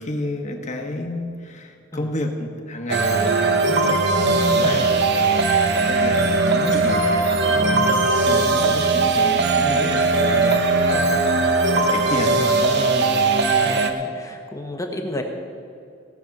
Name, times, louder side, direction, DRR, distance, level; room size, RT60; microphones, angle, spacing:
voice 1, 0.0-7.7 8.2-13.1, left 1 dB, 40° left, 3 dB, 1.4 m, -31 dB
sound 1, 2.9-13.9, right 3 dB, 60° right, 0.9 m, -19 dB
voice 2, 4.2-5.0 7.7-8.7 10.8-11.2 12.2-13.2 13.5-15.2, left 1 dB, 15° left, 2 dB, 1.2 m, -33 dB
18.0 x 7.2 x 6.0 m, 2.4 s
head